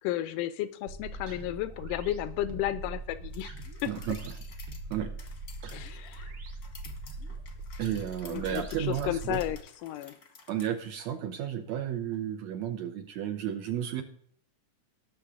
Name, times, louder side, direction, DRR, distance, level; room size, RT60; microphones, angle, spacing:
voice 1, 0.0-3.5 3.8-3.9 5.7-6.3 8.3-10.2, left 14 dB, 90° left, 13 dB, 2.2 m, -33 dB
sound 1, 0.9-9.6, right 2 dB, 55° right, 1.7 m, -41 dB
sound 2, 3.3-10.7, left 5 dB, 55° left, 1.0 m, -53 dB
voice 2, 3.9-4.2 4.9-5.1 5.6-5.8 7.8-9.4 10.5-14.0, right 10 dB, 75° right, 6 dB, 1.8 m, -33 dB
18.5 x 6.4 x 3.6 m, 0.63 s
omnidirectional pair, 3.7 m